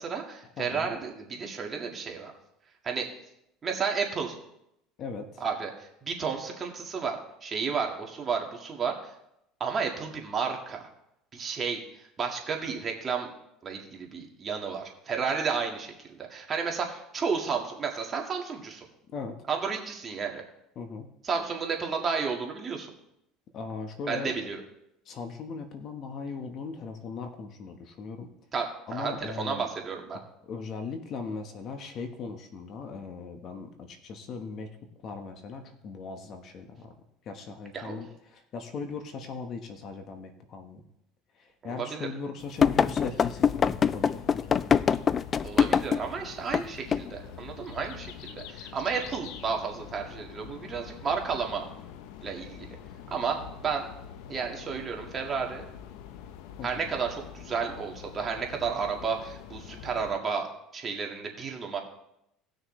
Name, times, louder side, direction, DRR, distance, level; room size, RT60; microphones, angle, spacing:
voice 1, 0.0-2.3 2.8-3.1 3.6-4.4 5.4-9.1 9.6-10.9 11.3-13.3 13.6-18.9 19.5-20.4 21.2-22.9 24.1-24.6 28.5-30.2 37.7-38.0 41.6-42.1 45.4-51.6 52.2-52.8 53.1-53.9 54.3-55.6 56.6-60.5 60.7-61.8, right 5 dB, 30° right, 1 dB, 1.9 m, -32 dB
voice 2, 0.6-0.9 5.0-5.4 19.1-19.4 20.7-21.1 23.5-24.3 25.0-28.3 28.9-29.7 30.4-37.0 37.2-40.8 41.3-44.8 56.6-56.9, left 4 dB, 45° left, 6 dB, 1.3 m, -39 dB
sound 1, 42.6-60.1, left 9 dB, 75° left, 0.8 m, -45 dB
sound 2, 42.6-46.1 46.5-46.6 46.9-47.1, left 7 dB, 30° left, 0.3 m, -23 dB
18.5 x 6.4 x 3.3 m, 0.81 s
supercardioid pair, 120°, 0 cm